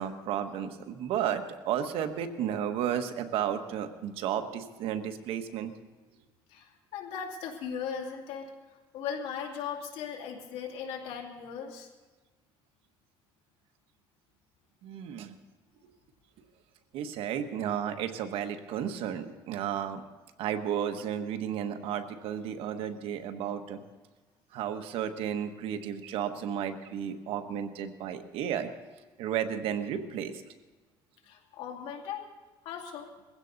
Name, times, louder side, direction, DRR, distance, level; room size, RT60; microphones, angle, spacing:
voice 1, 0.0-5.7 14.8-15.3 16.9-20.0 20.4-23.8 24.5-28.7 29.2-30.4, right 9 dB, 80° right, 7 dB, 1.3 m, -33 dB
voice 2, 6.5-8.5 8.9-11.9 31.3-32.3 32.6-33.1, left 7 dB, 80° left, 1 dB, 2.5 m, -38 dB
21.0 x 16.0 x 4.0 m, 1.2 s
cardioid pair, 120°, 9 cm